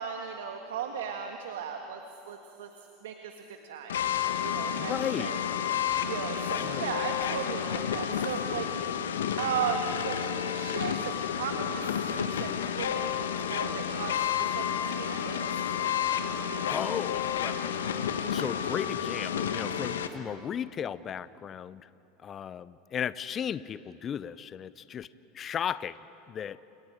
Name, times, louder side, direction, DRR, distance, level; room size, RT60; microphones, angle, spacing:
voice 1, 0.0-2.7 3.0-4.0 4.4-4.9 5.2-5.4 6.0-8.7 9.4-11.8 12.1-13.1 13.4-15.5, right 7 dB, 75° right, 4 dB, 1.6 m, -36 dB
sound 1, 3.9-20.1, left 8 dB, 80° left, 1.3 m, -31 dB
voice 2, 4.8-5.3 6.6-6.9 16.7-17.6 18.2-21.8 22.2-25.1 25.3-26.0 26.3-26.6, left 8 dB, 35° left, 17 dB, 0.6 m, -35 dB
29.0 x 29.0 x 5.0 m, 2.9 s
hypercardioid pair, 90°, 0 cm